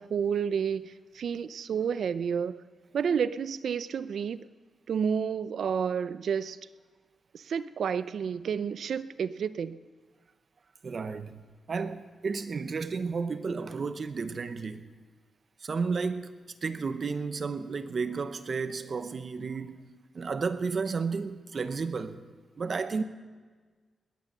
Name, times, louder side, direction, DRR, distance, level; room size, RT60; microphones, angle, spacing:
voice 1, 0.0-2.6 2.9-4.4 4.9-6.6 7.3-9.8, right 7 dB, 75° right, 0.5 m, -30 dB
voice 2, 10.8-11.4 11.7-14.9 15.6-22.2 22.6-23.0, right 4 dB, 50° right, 0.9 m, -32 dB
20.0 x 9.6 x 6.7 m
cardioid pair, 75°, 0 cm